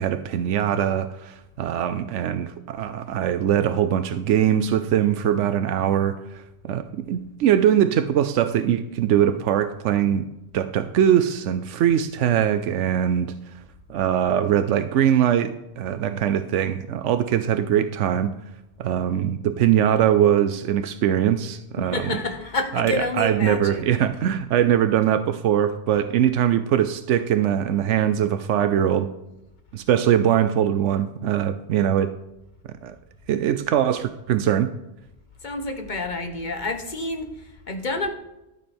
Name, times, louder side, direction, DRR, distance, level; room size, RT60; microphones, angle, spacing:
voice 1, 0.0-10.3 10.5-13.3 13.9-18.3 18.8-22.2 22.7-29.1 29.7-32.1 32.8-32.9 33.3-34.7, right 10 dB, 90° right, 11 dB, 0.9 m, -22 dB
voice 2, 21.8-24.0 35.4-38.1, left 2 dB, 40° left, 6 dB, 1.3 m, -29 dB
12.5 x 6.8 x 4.4 m, 0.94 s
omnidirectional pair, 1.2 m